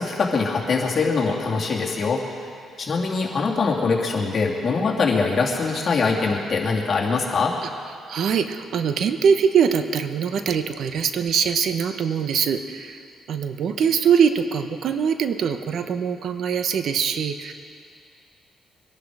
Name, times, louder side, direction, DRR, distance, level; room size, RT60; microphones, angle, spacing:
voice 1, 0.0-2.2 2.8-7.5, left 4 dB, 45° left, -2 dB, 2.8 m, -23 dB
voice 2, 8.1-13.0 13.3-17.5, right 7 dB, 65° right, 8 dB, 0.9 m, -22 dB
23.5 x 11.5 x 4.9 m, 2.3 s
cardioid pair, 90°, 0 cm